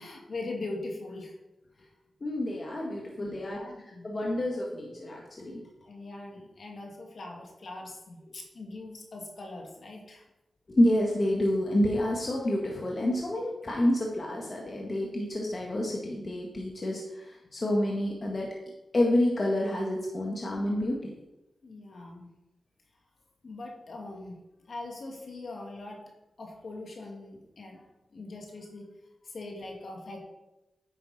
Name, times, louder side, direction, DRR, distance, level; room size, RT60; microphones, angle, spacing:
voice 1, 0.0-1.3 1.8-1.9 3.2-4.1 5.8-10.2 21.6-22.3 23.4-24.4 24.7-26.0 26.4-27.8 28.1-28.9 29.2-30.2, left 2 dB, 65° left, 0 dB, 2.2 m, -41 dB
voice 2, 2.2-3.6 4.0-5.6 10.7-18.5 18.9-21.1, left 1 dB, 50° left, -2 dB, 1.6 m, -28 dB
9.5 x 5.8 x 4.2 m, 0.96 s
cardioid pair, 40°, 0 cm